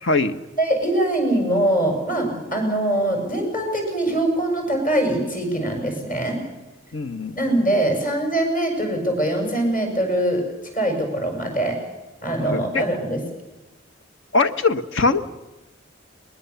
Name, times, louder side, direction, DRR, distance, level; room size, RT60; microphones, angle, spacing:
voice 1, 0.0-0.4 6.9-7.4 12.4-12.8 14.3-15.2, left 3 dB, 70° left, 11 dB, 1.1 m, -21 dB
voice 2, 0.6-6.4 7.4-10.4 10.7-11.8 12.2-13.2, right 1 dB, 45° left, 3 dB, 6.7 m, -22 dB
21.5 x 21.0 x 7.0 m, 1.1 s
head